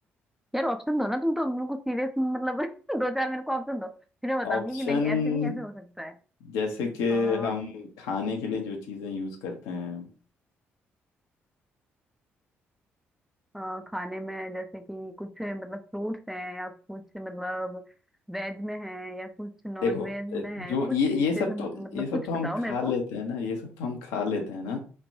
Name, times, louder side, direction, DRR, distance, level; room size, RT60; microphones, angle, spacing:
voice 1, 0.5-3.9 4.2-6.2 7.1-7.5 13.5-17.8 18.3-21.0 21.3-22.9, equal, 5° right, 5 dB, 0.4 m, -32 dB
voice 2, 4.4-5.6 6.4-10.0 19.8-24.8, left 4 dB, 70° left, 3 dB, 0.6 m, -29 dB
3.2 x 2.1 x 2.6 m, 0.38 s
figure-of-eight pair, 40°, 6 cm